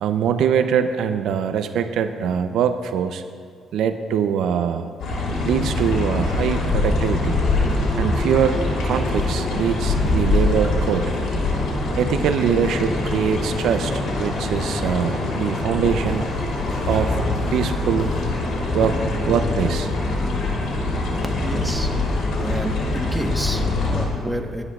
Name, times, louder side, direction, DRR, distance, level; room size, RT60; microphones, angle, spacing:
voice 1, 0.0-3.2 3.7-4.9 5.4-7.4 8.0-11.1 12.0-16.3 16.9-17.2 17.5-18.1 18.7-19.9, right 8 dB, 80° right, 9 dB, 0.5 m, -23 dB
sound 1, 5.0-24.0, left 2 dB, 80° left, 3.1 m, -23 dB
sound 2, 5.8-19.5, left 2 dB, 45° left, 3.8 m, -36 dB
voice 2, 21.4-22.0 22.4-24.6, right 1 dB, 10° right, 3 dB, 1.1 m, -30 dB
25.0 x 10.0 x 2.4 m, 2.1 s
cardioid pair, 90°, 0 cm